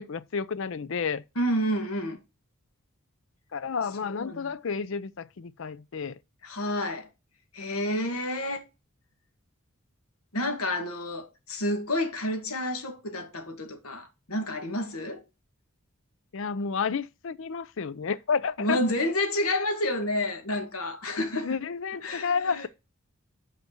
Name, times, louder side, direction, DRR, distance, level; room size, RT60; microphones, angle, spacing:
voice 1, 0.0-1.2 3.5-6.2 16.3-18.8 21.4-22.7, left 5 dB, 60° left, 0.5 m, -31 dB
voice 2, 1.3-2.2 4.1-4.5 6.4-7.1 7.5-8.6 10.3-15.2 18.6-21.6 22.0-22.7, left 1 dB, 90° left, 1.7 m, -29 dB
5.8 x 5.4 x 6.4 m
head